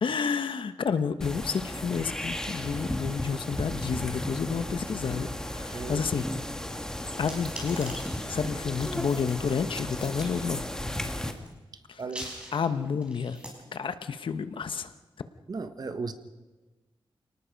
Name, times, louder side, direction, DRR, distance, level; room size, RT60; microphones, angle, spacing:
voice 1, 0.0-6.3 7.2-8.0 8.3-10.7 11.9-12.0 12.5-13.4 13.7-14.9, left 6 dB, 70° left, 11 dB, 1.2 m, -30 dB
sound 1, 1.2-11.3, left 1 dB, 5° left, 1.7 m, -35 dB
voice 2, 5.7-6.1 12.0-12.3 15.5-16.1, right 4 dB, 50° right, 10 dB, 1.4 m, -35 dB
sound 2, 7.3-9.5 10.0-10.3 10.8-11.5 12.0-13.5, equal, 10° right, 5.3 m, -43 dB
28.0 x 19.0 x 5.3 m, 1.2 s
wide cardioid pair, 150°, 9 cm